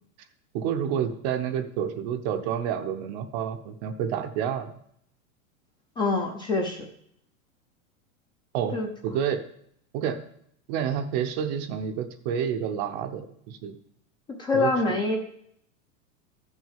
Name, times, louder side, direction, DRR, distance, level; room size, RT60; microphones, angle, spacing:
voice 1, 0.5-4.7 8.5-8.8 9.0-9.4 9.9-10.2 10.7-13.8 14.5-14.7, right 8 dB, 30° right, 8 dB, 0.8 m, -29 dB
voice 2, 6.0-6.9 8.7-8.9 14.4-15.2, left 3 dB, 10° left, 3 dB, 0.6 m, -25 dB
13.5 x 6.3 x 7.3 m, 0.69 s
supercardioid pair, 170°, 42 cm